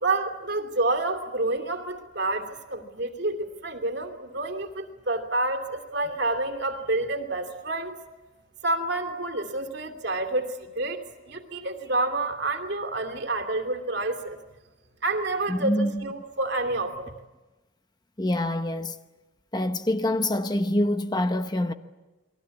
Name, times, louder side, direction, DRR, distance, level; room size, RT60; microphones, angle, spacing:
voice 1, 0.0-8.0 8.6-14.4 15.0-17.1, right 2 dB, 60° right, 2.9 m, -29 dB
voice 2, 15.5-16.1 18.2-19.0 19.5-21.7, left 1 dB, 20° left, 1.0 m, -25 dB
30.0 x 22.0 x 8.5 m
head